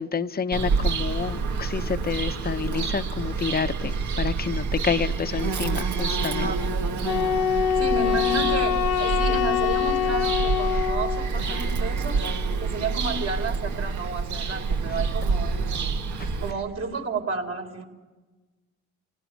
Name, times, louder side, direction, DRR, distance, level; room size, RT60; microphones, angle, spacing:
voice 1, 0.0-6.5 11.5-11.6 16.2-16.3, left 6 dB, 30° left, 11 dB, 1.0 m, -29 dB
Bird vocalization bird call bird song, 0.5-16.5, right 4 dB, 70° right, 2.3 m, -27 dB
voice 2, 6.3-7.2 7.8-12.2 12.6-15.9 16.4-17.8, right 4 dB, 55° right, 3 dB, 4.8 m, -32 dB
Wind instrument woodwind instrument, 7.1-11.3, left 9 dB, 90° left, 1.2 m, -24 dB
29.5 x 17.5 x 9.6 m, 1.2 s
cardioid pair, 90°, 30 cm